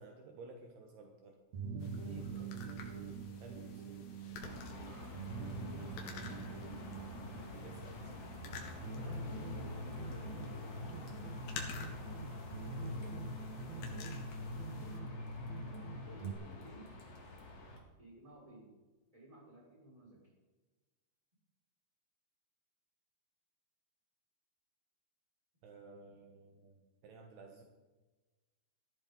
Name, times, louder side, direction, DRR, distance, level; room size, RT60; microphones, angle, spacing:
voice 1, 0.0-1.4 2.4-2.5 3.4-3.8 7.6-8.1 14.8-14.9 25.6-27.6, right 3 dB, 70° right, 2 dB, 3.2 m, -54 dB
sound 1, 1.5-16.3, right 2 dB, 50° right, 2.3 m, -44 dB
sound 2, 1.8-15.0, left 5 dB, 80° left, 4.1 m, -52 dB
voice 2, 1.9-2.6 4.8-5.7 8.9-10.5 14.6-14.9 16.1-16.9 18.0-18.7 19.1-20.3, equal, 5° right, -4 dB, 5.9 m, -56 dB
sound 3, 4.4-17.8, left 2 dB, 40° left, 3.1 m, -49 dB
19.5 x 14.0 x 4.1 m, 1.2 s
omnidirectional pair, 5.0 m